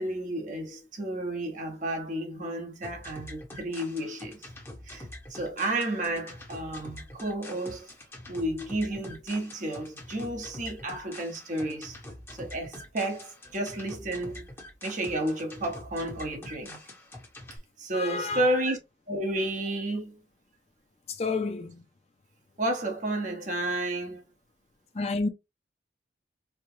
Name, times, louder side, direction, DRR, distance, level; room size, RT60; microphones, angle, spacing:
voice 1, 0.0-4.4 4.9-7.9 8.3-12.0 12.3-14.5 14.8-16.8 17.8-18.8 19.1-20.2 22.6-24.2, right 1 dB, 45° right, 1.2 m, -31 dB
sound 1, 2.8-17.6, left 1 dB, 15° left, 1.2 m, -45 dB
voice 2, 17.9-18.5 21.2-21.8 25.0-25.3, left 3 dB, 35° left, 0.5 m, -30 dB
4.5 x 2.3 x 2.7 m
head